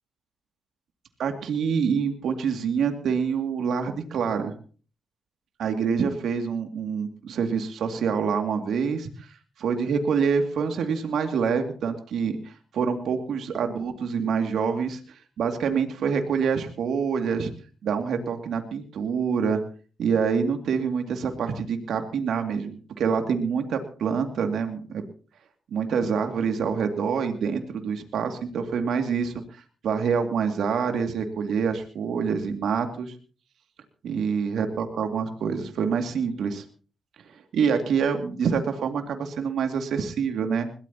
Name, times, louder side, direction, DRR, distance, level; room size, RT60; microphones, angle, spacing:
voice 1, 1.2-4.5 5.6-17.5 17.8-19.6 20.0-25.1 25.7-33.2 34.0-36.6 37.3-40.7, right 6 dB, 75° right, 5 dB, 2.3 m, -26 dB
21.5 x 17.5 x 2.9 m, 0.39 s
supercardioid pair, 50°, 0 cm